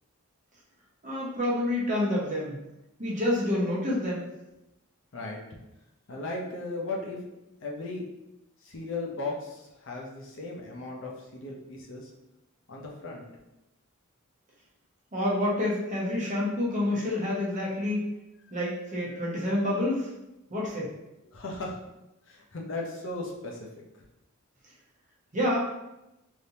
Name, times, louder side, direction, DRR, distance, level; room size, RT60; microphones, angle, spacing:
voice 1, 1.0-2.6 3.0-4.2 15.1-18.1 18.5-20.1 20.5-20.9 25.3-25.6, left 1 dB, 35° right, -5 dB, 0.8 m, -28 dB
voice 2, 6.1-7.2 7.6-8.0 8.6-12.1 12.7-13.2 21.3-21.8 22.3-23.6, left 2 dB, 60° left, -1 dB, 0.6 m, -36 dB
3.3 x 2.7 x 2.8 m, 0.93 s
head